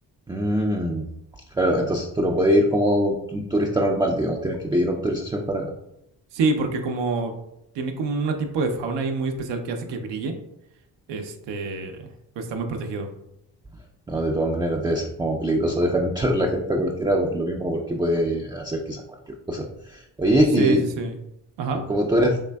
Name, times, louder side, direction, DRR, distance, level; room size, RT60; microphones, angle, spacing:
voice 1, 0.3-1.0 1.6-5.7 14.1-19.0 19.5-19.6 20.2-20.8 21.7-22.4, equal, 10° right, 0 dB, 0.3 m, -22 dB
voice 2, 6.3-7.3 7.7-10.3 11.1-12.1 12.4-13.1 20.6-21.2 21.6-21.8, right 3 dB, 75° right, 5 dB, 0.6 m, -26 dB
3.6 x 3.2 x 2.2 m, 0.84 s
supercardioid pair, 50°, 43 cm